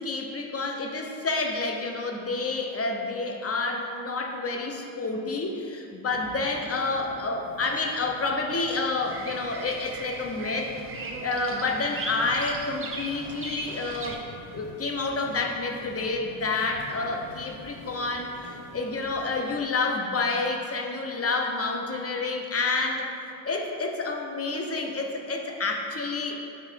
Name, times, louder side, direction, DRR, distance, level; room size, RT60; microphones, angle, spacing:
voice 1, 0.0-10.7 11.2-14.2 14.5-23.1 23.4-26.3, left 3 dB, 30° left, 2 dB, 0.8 m, -29 dB
sound 1, 6.1-19.6, left 1 dB, 80° left, 1.2 m, -47 dB
Bird vocalization bird call bird song, 9.0-14.1, right 3 dB, 25° right, 0.7 m, -38 dB
4.9 x 4.6 x 4.5 m, 2.6 s
supercardioid pair, 70°, 48 cm